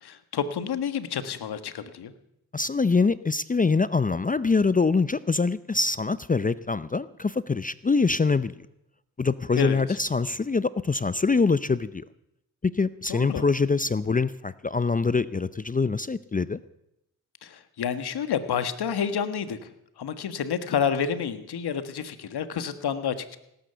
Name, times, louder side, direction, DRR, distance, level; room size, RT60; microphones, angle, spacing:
voice 1, 0.0-2.1 9.5-10.0 13.1-13.4 17.4-19.7 20.0-23.4, left 7 dB, 65° left, 11 dB, 1.5 m, -29 dB
voice 2, 2.5-8.5 9.2-12.0 12.6-16.6, left 4 dB, 20° left, 16 dB, 0.6 m, -24 dB
18.0 x 10.5 x 6.9 m, 0.83 s
supercardioid pair, 50°, 41 cm